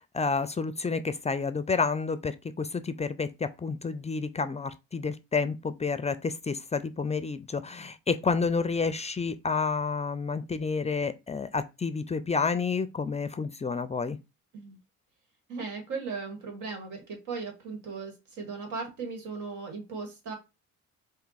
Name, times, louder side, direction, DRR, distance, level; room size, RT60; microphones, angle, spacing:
voice 1, 0.0-14.2, left 4 dB, 20° left, 0.4 m, -30 dB
voice 2, 15.5-20.3, right 4 dB, 85° right, 2.0 m, -37 dB
4.5 x 2.7 x 4.0 m
cardioid pair, 90°, 30 cm